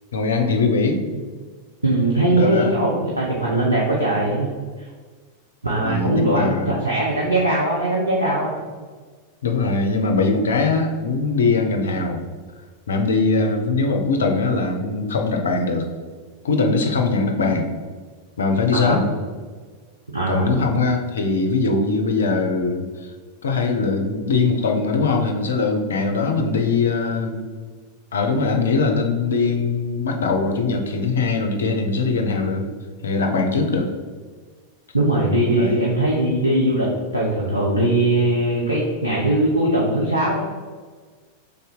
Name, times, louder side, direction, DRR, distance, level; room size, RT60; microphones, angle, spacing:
voice 1, 0.1-1.0 2.2-2.7 5.8-6.8 9.4-12.2 12.9-15.9 16.4-17.7 18.4-19.0 20.3-23.1 23.4-27.5 28.1-32.7 33.0-33.9 35.6-35.9, left 3 dB, 65° left, 3 dB, 0.5 m, -21 dB
voice 2, 1.8-4.5 4.8-4.9 5.6-8.6 18.7-19.1 20.1-20.7 34.9-36.9 37.1-40.4, right 1 dB, 85° right, -4 dB, 0.6 m, -20 dB
3.4 x 2.7 x 3.5 m, 1.5 s
figure-of-eight pair, 90°, 0 cm